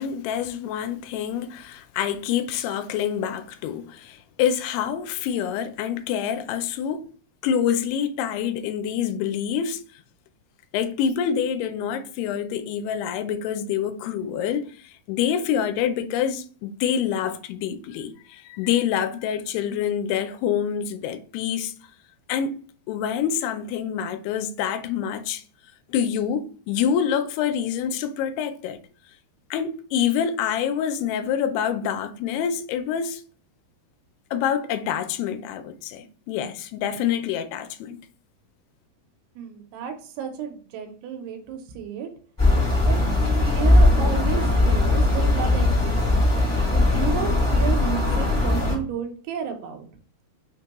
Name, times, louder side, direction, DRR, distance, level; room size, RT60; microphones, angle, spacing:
voice 1, 0.0-7.1 7.4-9.8 10.7-21.7 22.3-22.6 22.9-25.4 25.9-28.8 29.5-33.2 34.3-38.0, left 8 dB, 85° left, 2.5 m, -26 dB
voice 2, 39.4-42.1 42.9-43.0 43.4-46.0 46.7-49.9, right 7 dB, 85° right, 2.8 m, -32 dB
sound 1, 42.4-48.7, left 2 dB, 30° left, 0.3 m, -19 dB
5.9 x 2.2 x 2.9 m
omnidirectional pair, 4.5 m